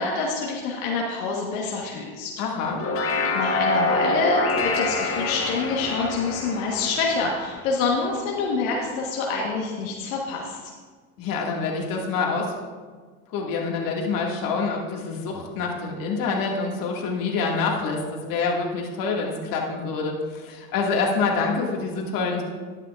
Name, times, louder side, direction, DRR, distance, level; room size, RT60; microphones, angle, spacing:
voice 1, 0.0-2.3 3.0-10.6, left 4 dB, 80° left, -2 dB, 1.4 m, -26 dB
voice 2, 2.4-2.8 11.2-12.5 13.3-22.4, left 4 dB, 55° left, -1 dB, 2.1 m, -26 dB
sound 1, 2.6-8.2, left 2 dB, 35° left, 1.2 m, -26 dB
12.0 x 9.3 x 2.5 m, 1.5 s
hypercardioid pair, 95°, 41 cm